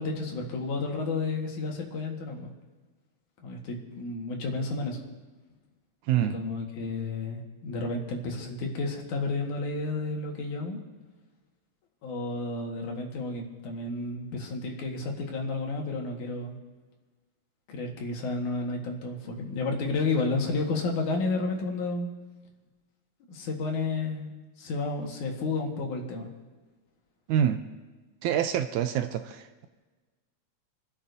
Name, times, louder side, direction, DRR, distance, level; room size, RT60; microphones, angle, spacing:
voice 1, 0.0-2.5 3.4-5.0 6.2-10.8 12.0-16.6 17.7-22.1 23.3-24.3 24.6-26.3, left 3 dB, 70° left, 0 dB, 3.0 m, -31 dB
voice 2, 6.1-6.4 27.3-27.6 28.2-29.7, right 9 dB, 80° right, 8 dB, 1.9 m, -26 dB
28.5 x 12.5 x 2.7 m, 1.3 s
omnidirectional pair, 3.7 m